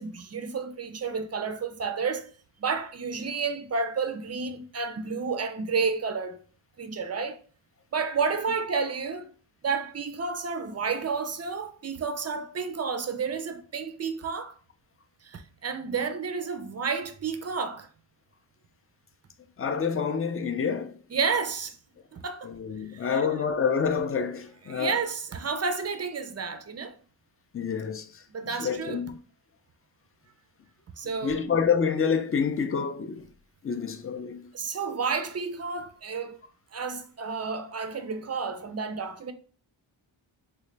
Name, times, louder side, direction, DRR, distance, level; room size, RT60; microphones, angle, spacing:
voice 1, 0.0-2.3 2.6-6.4 6.8-7.4 7.9-9.3 9.6-14.6 15.2-17.9 21.1-21.8 22.1-22.6 22.9-23.3 24.7-27.0 28.3-29.0 31.0-31.4 34.5-36.4 36.7-39.3, right 5 dB, 35° right, 0.4 m, -31 dB
voice 2, 19.6-21.0 22.4-25.0 27.5-29.2 31.2-33.3 33.6-34.5, left 6 dB, 30° left, 0.4 m, -28 dB
3.7 x 2.2 x 3.2 m
wide cardioid pair, 80°, 49 cm